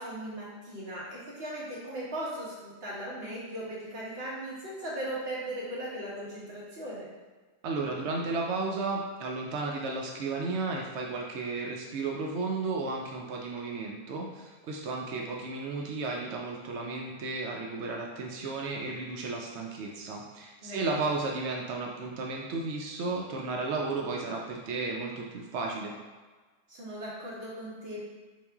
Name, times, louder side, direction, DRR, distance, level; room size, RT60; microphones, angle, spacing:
voice 1, 0.0-7.1 20.6-21.0 26.7-28.0, right 1 dB, 40° right, -7 dB, 1.2 m, -38 dB
voice 2, 7.6-25.9, right 3 dB, 90° right, -1 dB, 0.6 m, -33 dB
3.6 x 2.5 x 3.4 m, 1.3 s
omnidirectional pair, 1.8 m